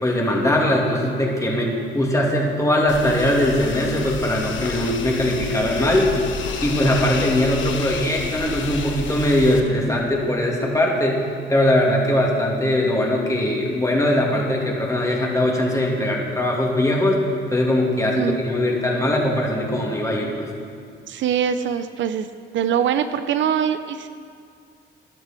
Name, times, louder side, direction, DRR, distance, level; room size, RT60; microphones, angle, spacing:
voice 1, 0.0-6.1 6.6-17.2 17.5-20.5, left 1 dB, 15° left, -2 dB, 2.6 m, -21 dB
sound 1, 2.9-9.6, left 6 dB, 75° left, 1.1 m, -30 dB
voice 2, 21.1-22.3 22.5-24.1, right 8 dB, 70° right, 11 dB, 0.6 m, -23 dB
14.0 x 11.0 x 4.5 m, 2.3 s
cardioid pair, 90°, 20 cm